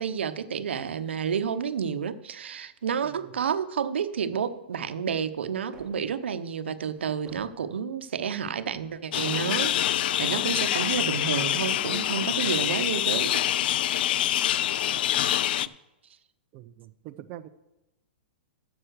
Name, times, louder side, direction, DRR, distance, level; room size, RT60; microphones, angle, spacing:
voice 1, 0.0-13.4, right 7 dB, 85° right, 11 dB, 0.8 m, -30 dB
voice 2, 3.0-3.4 14.8-15.0 16.5-17.5, right 13 dB, 30° right, 9 dB, 0.5 m, -44 dB
sound 1, 5.3-6.1 6.8-7.7 8.3-9.0 9.7-10.6 11.3-12.1 12.8-13.6, right 3 dB, 10° right, 3.5 m, -55 dB
sound 2, 9.1-15.7, left 12 dB, 60° left, 0.4 m, -26 dB
9.2 x 7.0 x 6.5 m, 0.96 s
hypercardioid pair, 150°, 6 cm